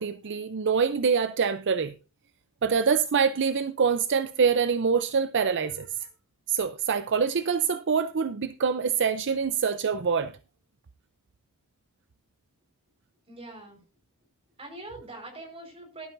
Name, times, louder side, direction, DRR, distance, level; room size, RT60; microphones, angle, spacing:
voice 1, 0.0-1.9 2.6-5.9 6.5-10.3, right 6 dB, 55° right, 0.6 m, -25 dB
voice 2, 13.3-13.8 14.6-16.1, right 2 dB, 25° right, 4.8 m, -43 dB
15.5 x 12.0 x 2.6 m
head